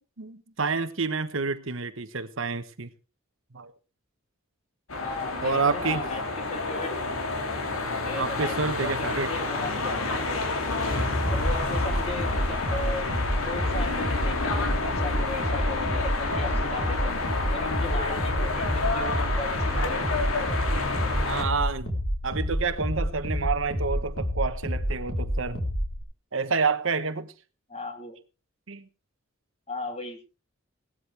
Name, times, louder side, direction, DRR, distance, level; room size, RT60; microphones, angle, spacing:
voice 1, 0.2-2.9 3.5-3.7 5.4-6.0 8.2-9.3 21.3-22.0 22.2-25.6 26.3-27.3 28.7-28.9, right 4 dB, 65° right, 1.1 m, -28 dB
sound 1, 4.9-21.4, left 3 dB, 80° left, 2.9 m, -29 dB
voice 2, 5.0-6.2 6.5-7.3 8.0-8.5 8.8-10.0 11.1-13.0 13.4-17.3 17.5-20.1 27.7-28.2 29.7-30.3, left 2 dB, 30° left, 2.9 m, -37 dB
sound 2, 11.2-26.0, equal, 65° left, 4.0 m, -29 dB
18.0 x 13.0 x 3.4 m
head